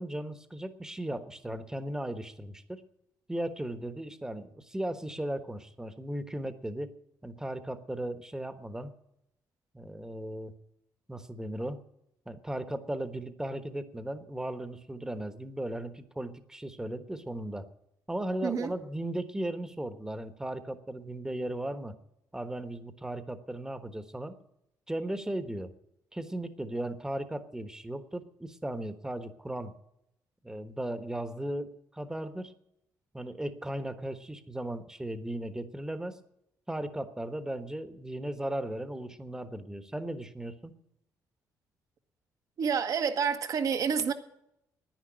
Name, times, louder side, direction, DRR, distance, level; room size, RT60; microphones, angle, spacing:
voice 1, 0.0-2.8 3.3-6.9 7.2-8.9 9.7-10.5 11.1-11.8 12.3-17.7 18.1-22.0 22.3-24.4 24.9-25.7 26.1-29.7 30.4-32.5 33.1-36.2 36.7-40.7, right 1 dB, 10° right, 1.2 m, -36 dB
voice 2, 42.6-44.1, right 6 dB, 60° right, 1.4 m, -28 dB
10.5 x 10.0 x 9.9 m
cardioid pair, 90°, 7 cm